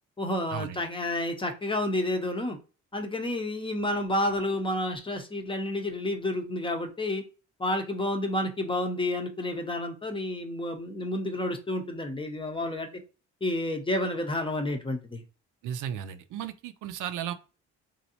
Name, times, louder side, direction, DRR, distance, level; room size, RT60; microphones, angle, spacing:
voice 1, 0.2-2.6 2.9-7.2 7.6-12.9 13.4-15.2, left 1 dB, 15° left, 0.6 m, -30 dB
voice 2, 15.6-17.3, right 9 dB, 85° right, 0.5 m, -35 dB
3.1 x 2.6 x 2.8 m
cardioid pair, 90°, 30 cm